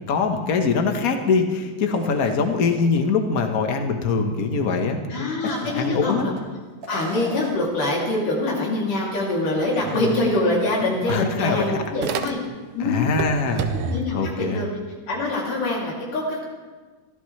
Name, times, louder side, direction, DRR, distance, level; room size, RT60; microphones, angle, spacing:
voice 1, 0.1-5.0 5.6-6.3 11.1-11.8 12.8-13.6 14.1-14.7, left 4 dB, 60° left, 4 dB, 0.9 m, -23 dB
sound 1, 1.9-3.0 3.4-3.5 5.3-6.4 6.8-7.7, right 2 dB, 50° right, 3.2 m, -38 dB
voice 2, 5.1-6.3 6.9-12.4 12.7-13.0 13.8-14.7 15.1-16.4, left 2 dB, 85° left, -3 dB, 4.6 m, -24 dB
sound 2, 9.4-11.3 12.0-12.1 12.9-14.0, right 4 dB, 70° right, 2.5 m, -34 dB
sound 3, 10.1-10.2 10.5-12.7 13.0-14.1, right 7 dB, 90° right, 1.2 m, -32 dB
22.5 x 15.5 x 3.3 m, 1.4 s
omnidirectional pair, 3.6 m